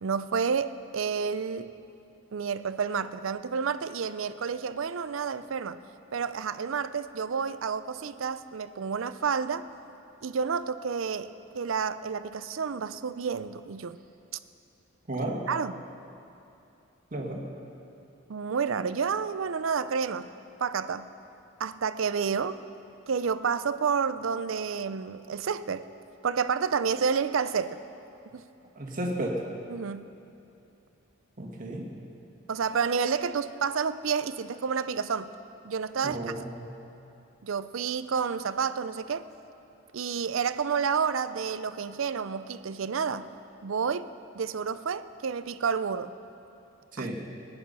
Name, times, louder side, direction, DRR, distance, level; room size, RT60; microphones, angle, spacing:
voice 1, 0.0-1.7 2.3-5.8 6.1-9.7 10.2-14.0 15.2-15.8 18.3-20.3 20.6-21.1 21.6-22.6 23.1-25.9 26.2-27.8 28.3-28.5 29.7-30.2 32.5-35.3 35.6-36.4 37.4-39.3 39.9-43.3 43.6-44.1 44.3-46.1 47.0-47.1, right 6 dB, 75° right, 13 dB, 0.5 m, -30 dB
voice 2, 15.1-15.4 17.1-17.4 28.8-29.4 31.4-31.9 36.0-36.7 46.9-47.2, right 1 dB, 40° right, 0 dB, 1.9 m, -33 dB
19.5 x 9.8 x 5.6 m, 2.7 s
head